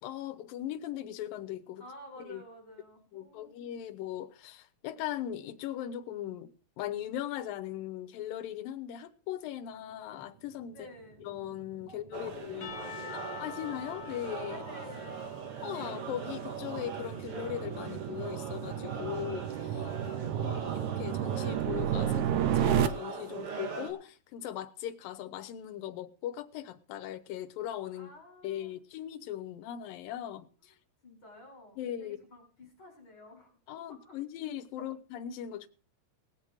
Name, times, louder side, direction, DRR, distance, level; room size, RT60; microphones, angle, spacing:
voice 1, 0.0-1.8 2.3-2.4 3.1-10.8 11.2-12.7 13.4-14.6 15.6-19.8 20.4-28.1 28.4-30.7 31.8-32.2 33.7-35.7, left 11 dB, 85° left, 2.7 m, -39 dB
voice 2, 1.8-3.6 10.7-11.3 11.9-13.5 14.5-15.3 19.8-20.7 27.9-28.7 30.7-30.8 31.0-33.5 33.9-34.2, left 1 dB, 35° left, 5.0 m, -52 dB
sound 1, 11.7-22.9, right 10 dB, 75° right, 1.9 m, -33 dB
sound 2, 12.1-23.9, right 5 dB, 45° right, 2.8 m, -42 dB
Percussion / Church bell, 12.6-16.6, left 6 dB, 60° left, 1.2 m, -46 dB
20.0 x 7.5 x 4.7 m
omnidirectional pair, 4.0 m